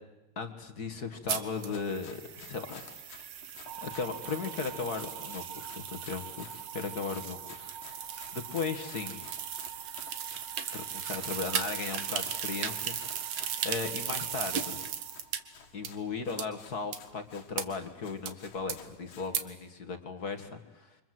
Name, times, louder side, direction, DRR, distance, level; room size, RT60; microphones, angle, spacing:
voice 1, 0.3-2.8 3.8-8.0 8.3-9.2 10.7-13.0 13.6-14.8 15.7-21.0, left 4 dB, 40° left, 7 dB, 1.7 m, -37 dB
Run, 1.1-19.4, left 6 dB, 85° left, 3.7 m, -55 dB
sound 1, 1.3-15.4 15.8-15.9 16.4-16.5 16.9-17.0 17.6-17.7 18.3-18.4 18.7-18.8 19.3-19.4, right 8 dB, 60° right, 2.2 m, -37 dB
sound 2, 3.7-15.8, right 8 dB, 90° right, 2.9 m, -48 dB
28.5 x 25.0 x 7.8 m, 1.0 s
omnidirectional pair, 3.8 m